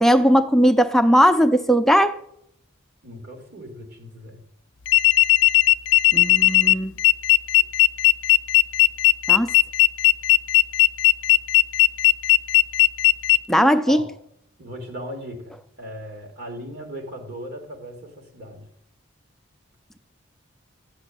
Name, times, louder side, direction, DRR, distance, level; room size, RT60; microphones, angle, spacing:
voice 1, 0.0-2.1 6.1-6.9 9.3-9.5 13.5-14.0, equal, ahead, 0.5 m, -18 dB
voice 2, 3.0-4.4 13.9-14.1 14.6-18.7, equal, 50° right, 3.7 m, -37 dB
sound 1, 4.9-13.4, left 17 dB, 60° left, 0.5 m, -16 dB
14.5 x 6.2 x 9.8 m
head